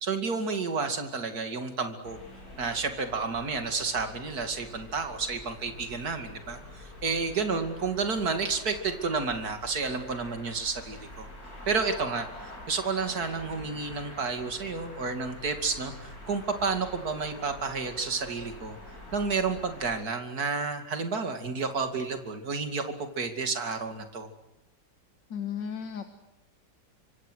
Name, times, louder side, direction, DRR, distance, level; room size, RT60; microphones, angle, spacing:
voice 1, 0.0-2.2 2.6-11.3 11.7-12.3 12.7-18.8 19.1-24.3, right 4 dB, 55° right, 6 dB, 3.0 m, -31 dB
sound 1, 2.0-19.9, left 1 dB, 55° left, 6.8 m, -46 dB
voice 2, 25.3-26.1, left 7 dB, 80° left, 7 dB, 2.1 m, -34 dB
26.0 x 24.5 x 6.4 m, 0.97 s
omnidirectional pair, 1.9 m